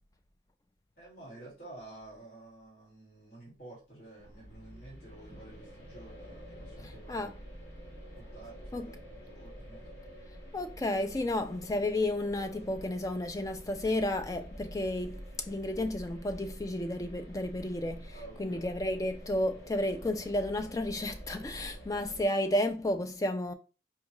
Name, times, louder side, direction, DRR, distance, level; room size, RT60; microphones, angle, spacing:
voice 1, 1.0-7.3 8.2-10.0 18.1-18.7, right 2 dB, 55° left, 1.9 m, -51 dB
sound 1, 4.2-22.2, equal, 85° left, 1.3 m, -48 dB
voice 2, 10.5-23.5, left 1 dB, 20° left, 0.3 m, -32 dB
4.5 x 2.3 x 2.9 m
head